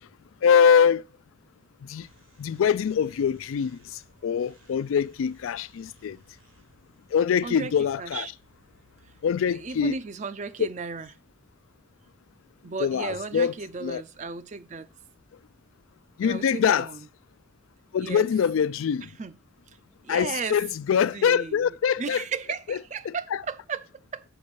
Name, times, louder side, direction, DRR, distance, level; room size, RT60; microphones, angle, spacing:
voice 1, 0.4-1.0 1.8-2.1 2.4-6.2 7.1-8.3 9.2-9.9 12.8-13.5 13.8-14.0 16.2-16.9 17.9-19.1 20.1-22.2 22.7-22.8 23.1-23.2, left 7 dB, 85° left, 0.3 m, -23 dB
sound 1, 2.0-10.0, right 1 dB, 80° right, 3.3 m, -60 dB
voice 2, 7.4-8.3 9.0-9.1 9.5-11.1 12.6-14.9 16.2-17.1 18.0-18.3 19.0-19.4 20.0-20.6 21.1-24.2, right 5 dB, 35° right, 0.4 m, -35 dB
6.6 x 5.3 x 6.9 m
head